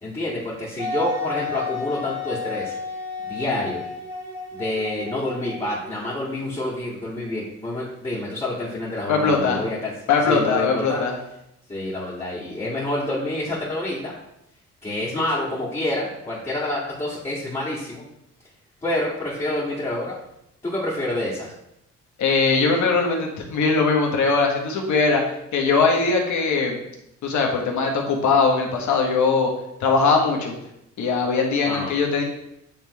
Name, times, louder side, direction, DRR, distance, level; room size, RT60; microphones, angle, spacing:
voice 1, 0.0-2.7 3.2-3.8 4.5-9.9 10.2-11.0 11.7-14.1 14.8-18.0 18.8-20.1 20.6-21.5 31.7-32.0, left 1 dB, 20° left, -8 dB, 2.0 m, -28 dB
Wind instrument woodwind instrument, 0.8-6.4, left 4 dB, 25° right, 1.8 m, -32 dB
voice 2, 9.1-9.6 10.1-11.1 22.2-25.2 25.5-26.8 27.2-29.5 29.8-30.5 31.0-32.2, left 4 dB, 70° left, 1 dB, 1.5 m, -20 dB
9.0 x 3.5 x 3.2 m, 0.82 s
cardioid pair, 90°, 30 cm